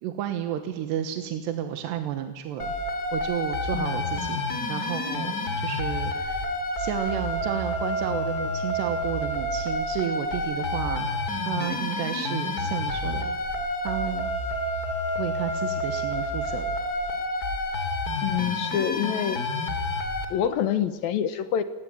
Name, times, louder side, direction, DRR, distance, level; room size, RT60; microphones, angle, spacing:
voice 1, 0.0-2.7 3.1-4.4 4.7-6.5 6.8-11.1 11.4-13.4 13.8-14.3 15.2-16.8, right 10 dB, 80° right, 7 dB, 3.5 m, -32 dB
sound 1, 2.6-20.2, left 1 dB, 25° left, 2.8 m, -29 dB
voice 2, 3.7-4.2 18.2-19.4 20.3-21.6, left 9 dB, 70° left, 11 dB, 2.7 m, -27 dB
28.5 x 19.0 x 9.6 m, 1.3 s
omnidirectional pair, 4.9 m